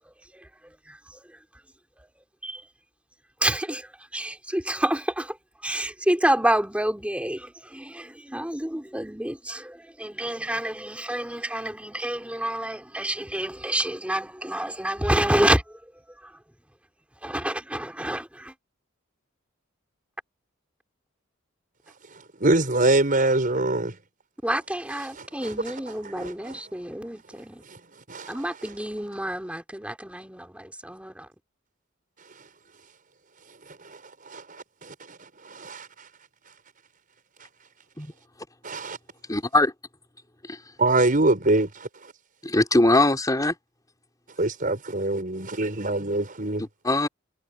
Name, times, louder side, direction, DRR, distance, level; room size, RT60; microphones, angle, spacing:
voice 1, 3.4-5.4 5.6-15.8 16.2-16.3 17.2-18.5 24.4-27.6 28.3-31.3, right 1 dB, 5° right, 2.8 m, -28 dB
voice 2, 22.4-24.0 25.2-25.5 26.2-26.6 27.7-27.8 28.1-28.3 33.8-34.0 34.3-35.9 38.6-39.0 40.8-41.9 44.4-46.6, right 2 dB, 45° right, 5.7 m, -24 dB
voice 3, 39.3-39.7 40.5-40.6 42.4-43.6 46.6-47.1, left 2 dB, 20° left, 3.6 m, -21 dB
head